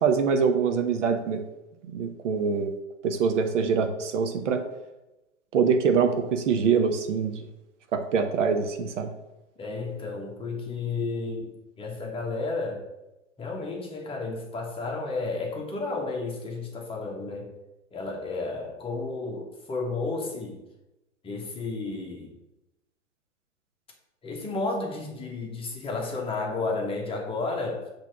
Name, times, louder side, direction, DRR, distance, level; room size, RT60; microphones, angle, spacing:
voice 1, 0.0-1.4 1.8-2.7 3.0-4.6 5.5-7.5 7.9-9.1, right 6 dB, 65° right, 6 dB, 1.0 m, -24 dB
voice 2, 9.6-11.5 11.8-12.8 13.4-17.5 17.9-20.6 21.2-22.3 24.2-27.9, left 3 dB, 15° left, -1 dB, 1.3 m, -32 dB
6.0 x 3.5 x 5.9 m, 0.97 s
figure-of-eight pair, 110°, 40 cm